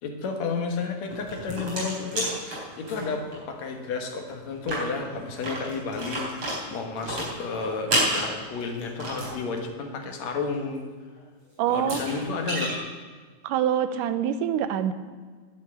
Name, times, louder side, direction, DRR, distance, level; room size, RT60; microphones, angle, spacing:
voice 1, 0.0-10.8 11.7-12.7, left 4 dB, 65° left, 4 dB, 2.5 m, -32 dB
sound 1, 1.1-3.4 3.7-3.8 4.1-4.2 4.5-9.4 11.2-11.3 11.7-12.8, right 1 dB, 40° right, 4.6 m, -30 dB
voice 2, 11.6-12.0 13.4-14.9, right 9 dB, 85° right, 11 dB, 2.4 m, -25 dB
11.0 x 8.2 x 8.6 m, 1.5 s
omnidirectional pair, 3.6 m